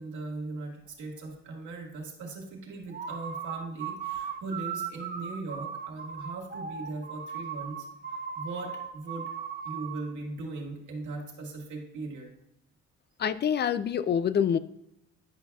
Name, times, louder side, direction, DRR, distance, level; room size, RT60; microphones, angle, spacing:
voice 1, 0.0-9.3 9.6-12.3, right 3 dB, 75° right, 0 dB, 2.0 m, -39 dB
sound 1, 2.9-10.1, right 7 dB, 30° right, 0.8 m, -37 dB
voice 2, 13.2-14.6, left 8 dB, 35° left, 15 dB, 0.4 m, -26 dB
10.5 x 5.6 x 2.3 m, 0.81 s
cardioid pair, 90°, 30 cm